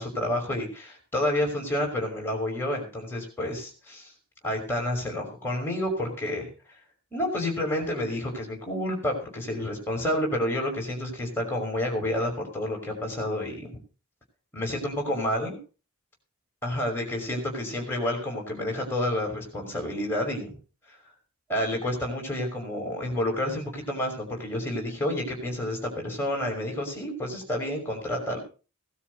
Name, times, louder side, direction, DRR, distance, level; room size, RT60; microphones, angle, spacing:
voice 1, 0.0-4.1 4.4-6.5 7.1-13.7 14.5-15.6 16.6-20.5 20.9-21.0 21.5-28.4, left 1 dB, 10° left, 1 dB, 5.6 m, -29 dB
17.0 x 12.5 x 4.1 m, 0.35 s
head